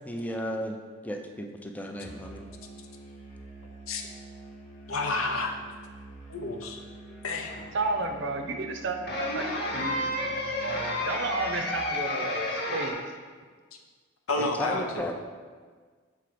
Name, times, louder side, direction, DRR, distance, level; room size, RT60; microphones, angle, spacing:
voice 1, 0.1-0.8 1.0-2.4 14.6-15.1, equal, 10° left, 3 dB, 0.4 m, -34 dB
Musical instrument, 2.0-11.9, right 2 dB, 35° left, 1.0 m, -47 dB
voice 2, 4.9-5.5 6.3-6.8 7.2-7.5 14.3-15.0, left 2 dB, 85° left, 3 dB, 0.7 m, -30 dB
sound 1, 7.1-8.0 9.0-12.9, left 2 dB, 55° left, 1.2 m, -31 dB
voice 3, 7.7-13.0, right 3 dB, 60° right, 5 dB, 0.6 m, -33 dB
7.2 x 3.4 x 5.0 m, 1.6 s
head